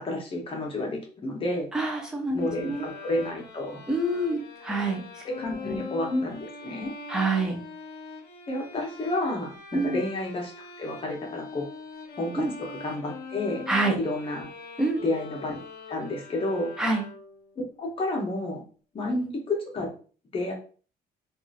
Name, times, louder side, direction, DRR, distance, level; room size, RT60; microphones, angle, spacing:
voice 1, 0.0-1.7 2.3-3.8 5.4-6.9 8.5-10.5 10.8-11.6 12.2-12.4 12.8-13.6 14.0-14.5 15.0-15.6 15.9-16.7 17.6-18.6 18.9-19.2 19.5-19.9 20.3-20.5, left 2 dB, 35° left, 0 dB, 0.8 m, -30 dB
voice 2, 1.7-2.8 3.9-5.2 5.6-5.8 6.1-6.3 7.1-7.6 9.7-10.0 12.4-12.5 13.7-13.9 14.8-15.0 16.8-17.0 19.1-19.3, right 2 dB, 5° right, 1 dB, 0.6 m, -27 dB
sound 1, 2.4-17.5, left 4 dB, 70° left, 0.7 m, -42 dB
2.7 x 2.4 x 2.4 m, 0.38 s
cardioid pair, 110°, 17 cm